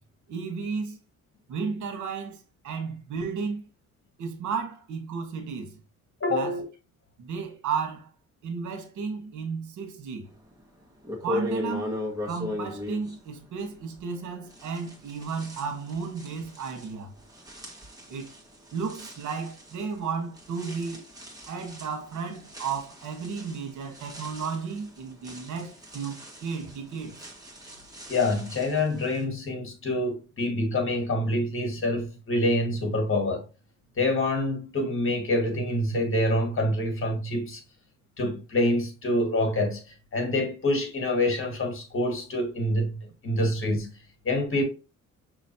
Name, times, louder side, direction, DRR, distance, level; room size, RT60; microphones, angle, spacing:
voice 1, 0.3-1.0 1.5-3.6 4.2-5.8 6.3-6.6 7.2-8.1 8.4-10.3 11.2-11.9 12.2-17.1 18.1-18.3 18.7-21.0 21.5-26.1 26.4-27.2, right 5 dB, 75° right, 1.3 m, -33 dB
voice 2, 6.2-6.6 28.1-33.4 34.0-37.6 38.2-39.8 40.1-42.9 43.2-43.9 44.2-44.6, left 1 dB, 45° left, 1.8 m, -26 dB
sound 1, 10.5-10.6 11.0-14.2 14.5-29.2, left 2 dB, 10° right, 1.8 m, -39 dB
6.0 x 3.1 x 2.8 m
cardioid pair, 90°, 30 cm